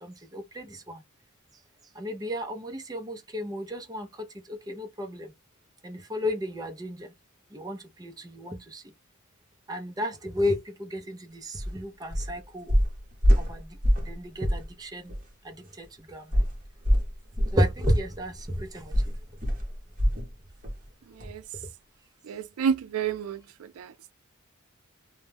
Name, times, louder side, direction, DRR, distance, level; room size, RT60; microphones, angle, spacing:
voice 1, 0.0-1.0 2.0-4.1 4.7-5.3 5.8-7.1 7.5-8.8 9.7-12.7 13.4-13.6 14.1-15.1 15.5-15.9 16.1-16.2 17.5-18.9, equal, 20° right, 0.5 m, -32 dB
sound 1, 11.6-11.7 12.1-12.4 12.7-14.2 14.4-14.7 15.1-15.2 16.3-20.3 20.6-20.8 21.2-21.3, equal, 40° right, 0.8 m, -25 dB
voice 2, 22.3-23.4 23.8-23.9, right 7 dB, 80° right, 0.4 m, -29 dB
2.2 x 2.1 x 3.2 m
head